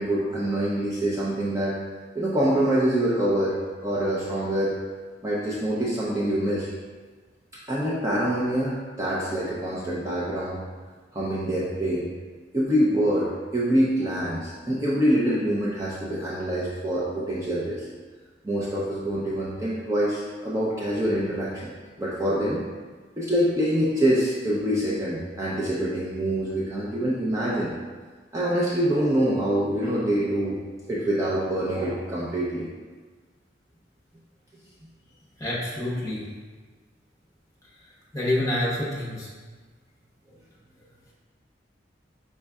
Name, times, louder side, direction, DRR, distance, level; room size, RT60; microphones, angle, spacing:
voice 1, 0.0-1.7 2.1-3.5 3.8-4.7 5.2-6.7 7.7-10.6 11.1-12.1 12.5-17.9 18.4-21.7 22.0-22.6 23.2-27.7 28.3-30.6 30.9-32.7, right 1 dB, 15° right, -7 dB, 0.6 m, -25 dB
voice 2, 35.4-36.2 38.1-39.3, left 1 dB, 20° left, -6 dB, 1.1 m, -27 dB
5.4 x 4.2 x 2.3 m, 1.4 s
head